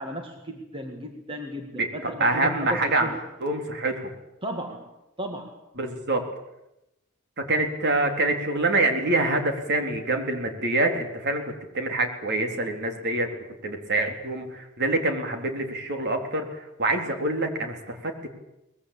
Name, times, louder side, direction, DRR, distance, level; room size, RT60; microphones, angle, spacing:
voice 1, 0.0-3.2 4.4-4.9 5.2-5.5, right 1 dB, 25° right, 4 dB, 2.1 m, -35 dB
voice 2, 2.2-3.1 3.4-4.1 5.8-6.2 7.5-13.3 13.6-18.3, right 2 dB, 55° right, 4 dB, 3.8 m, -26 dB
23.5 x 20.5 x 8.6 m, 0.90 s
head